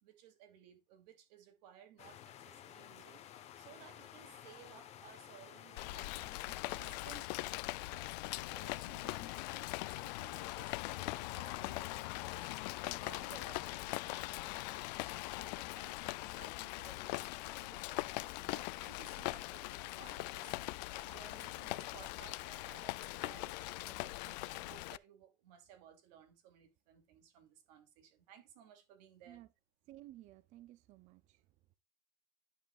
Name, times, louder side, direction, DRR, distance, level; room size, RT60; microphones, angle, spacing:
voice 1, 0.0-3.2 3.5-7.3 7.9-9.7 9.9-12.5 12.8-29.4, right 9 dB, 80° right, 2.7 m, -59 dB
sound 1, 2.0-7.2, left 10 dB, 30° left, 1.0 m, -54 dB
Rain, 5.8-25.0, left 21 dB, 90° left, 0.5 m, -41 dB
voice 2, 29.9-31.7, right 15 dB, 35° right, 0.4 m, -57 dB
10.0 x 7.1 x 2.4 m
cardioid pair, 165°, 21 cm